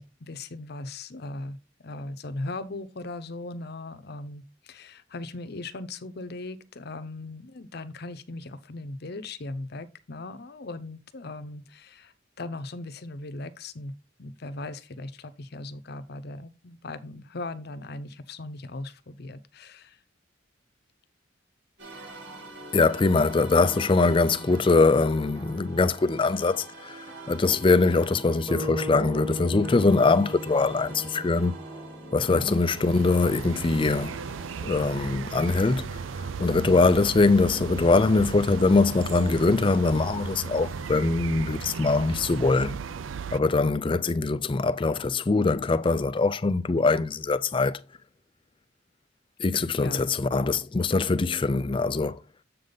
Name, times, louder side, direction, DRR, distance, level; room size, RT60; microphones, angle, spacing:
voice 1, 0.0-13.9 14.2-20.0 32.3-32.6 49.6-50.2, left 2 dB, 55° left, 0.7 m, -38 dB
sound 1, 21.8-34.7, right 3 dB, 70° right, 2.8 m, -44 dB
voice 2, 22.7-31.6 32.1-34.2 34.6-42.8 43.3-47.8 49.4-52.2, left 3 dB, 25° left, 0.4 m, -23 dB
sound 2, 28.5-32.7, left 1 dB, 15° right, 2.3 m, -36 dB
sound 3, 32.4-43.4, right 6 dB, 90° right, 0.4 m, -36 dB
7.6 x 5.2 x 3.9 m
head